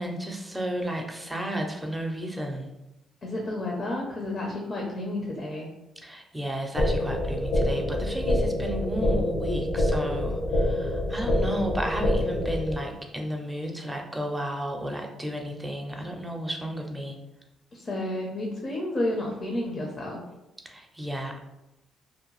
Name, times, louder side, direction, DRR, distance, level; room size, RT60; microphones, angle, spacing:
voice 1, 0.0-2.7 6.0-17.2 20.6-21.4, right 1 dB, 10° right, 2 dB, 0.5 m, -33 dB
voice 2, 3.2-5.7 17.7-20.2, left 1 dB, 45° left, -1 dB, 0.6 m, -31 dB
sound 1, 6.8-12.8, left 1 dB, 70° left, 0.9 m, -26 dB
2.6 x 2.2 x 3.0 m, 0.94 s
cardioid pair, 90°, 0 cm